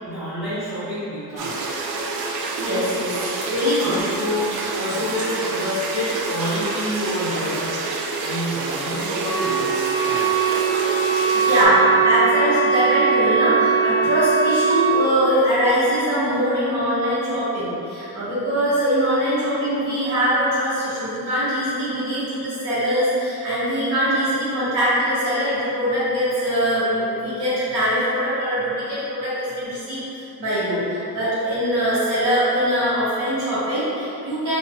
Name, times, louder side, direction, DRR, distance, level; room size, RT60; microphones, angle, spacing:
voice 1, 0.0-1.6 3.8-10.6 11.4-11.8 14.0-14.1, left 1 dB, ahead, -17 dB, 1.4 m, -29 dB
sound 1, 1.4-11.6, right 3 dB, 70° right, 0.5 m, -28 dB
voice 2, 2.6-4.0 11.3-34.6, equal, 50° right, -12 dB, 1.3 m, -22 dB
Wind instrument woodwind instrument, 9.2-15.0, right 6 dB, 80° left, 0.6 m, -20 dB
2.6 x 2.6 x 3.6 m, 2.8 s
cardioid pair, 170°, 40 cm